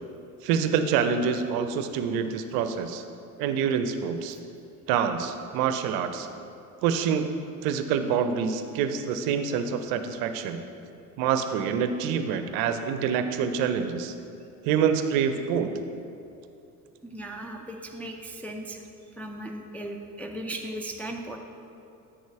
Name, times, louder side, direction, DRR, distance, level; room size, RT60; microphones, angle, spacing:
voice 1, 0.4-3.0 3.4-4.4 4.9-6.3 6.8-7.3 7.6-10.6 11.2-14.1 14.6-15.7, right 7 dB, 45° right, 9 dB, 0.7 m, -26 dB
voice 2, 17.0-18.8 19.2-21.4, right 1 dB, 5° left, 1 dB, 0.5 m, -37 dB
10.5 x 8.9 x 3.5 m, 2.7 s
figure-of-eight pair, 60°, 50 cm